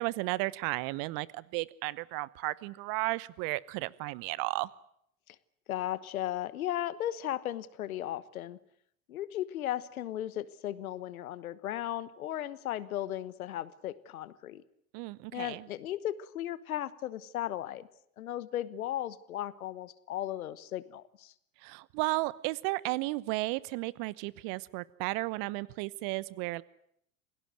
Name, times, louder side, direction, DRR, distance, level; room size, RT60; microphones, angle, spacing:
voice 1, 0.0-4.7 14.9-15.7 21.6-26.6, right 21 dB, 50° right, 21 dB, 1.0 m, -34 dB
voice 2, 5.7-8.6 9.1-14.6 15.3-17.9 18.2-21.3, left 12 dB, 75° left, 18 dB, 1.3 m, -36 dB
27.5 x 18.0 x 7.8 m, 0.70 s
figure-of-eight pair, 80°, 43 cm